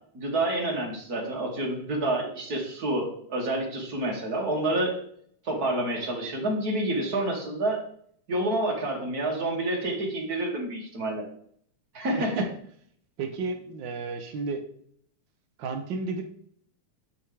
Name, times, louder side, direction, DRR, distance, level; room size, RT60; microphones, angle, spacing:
voice 1, 0.1-5.0 5.4-7.8 8.3-11.3 11.9-12.4, right 1 dB, 30° right, -1 dB, 2.6 m, -28 dB
voice 2, 13.2-14.6 15.6-16.2, right 3 dB, 80° right, 4 dB, 1.0 m, -32 dB
9.2 x 8.9 x 3.5 m, 0.63 s
omnidirectional pair, 3.6 m